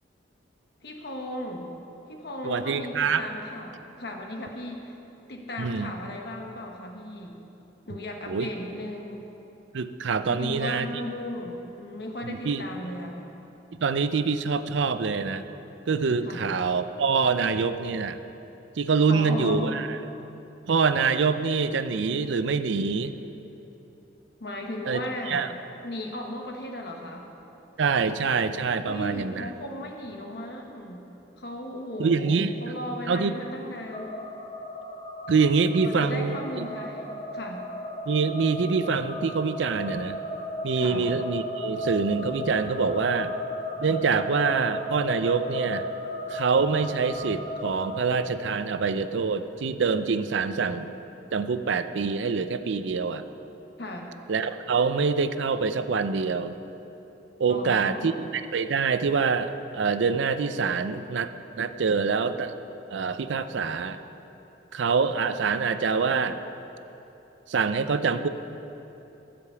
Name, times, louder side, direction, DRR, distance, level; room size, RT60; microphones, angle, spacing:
voice 1, 0.8-1.7 2.1-5.0 5.3-7.4 7.9-9.2 10.3-13.3 16.2-16.5 19.1-19.7 24.4-25.4 25.8-27.3 28.8-31.0 31.4-34.1 35.8-37.6 40.8-41.1 53.8-54.1 57.5-58.2, left 1 dB, 60° left, 2 dB, 1.2 m, -36 dB
voice 2, 2.4-3.2 5.6-5.9 8.3-8.5 9.7-10.9 12.2-12.6 13.8-15.4 15.9-18.2 18.8-19.9 20.7-23.1 24.9-25.0 25.3-25.5 27.8-29.5 32.0-32.5 33.1-33.3 35.3-36.4 38.1-40.2 40.6-43.3 43.8-45.9 46.3-51.0 51.3-53.2 54.3-56.6 57.4-61.3 61.6-62.5 62.9-64.0 64.7-66.4 67.5-68.3, right 5 dB, 75° right, 11 dB, 0.5 m, -25 dB
sound 1, 33.9-48.2, left 1 dB, 30° left, 0.9 m, -35 dB
15.5 x 5.2 x 6.8 m, 3.0 s
head